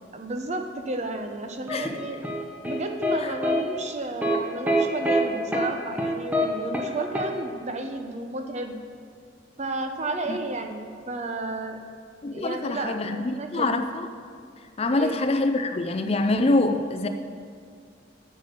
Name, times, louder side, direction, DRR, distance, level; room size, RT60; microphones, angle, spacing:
voice 1, 0.1-2.3 2.6-8.8 9.6-11.8 12.3-13.8 14.9-15.2, right 2 dB, 35° right, 5 dB, 0.7 m, -32 dB
sound 1, 1.7-3.2 3.4-3.6 4.2-4.4 4.7-5.2 5.5-5.7 6.0-6.5 6.7-6.9 7.1-7.3, equal, 10° right, 0.9 m, -24 dB
voice 2, 12.2-14.1 14.8-17.1, left 2 dB, 30° left, 7 dB, 0.4 m, -25 dB
8.1 x 6.7 x 6.6 m, 2.1 s
head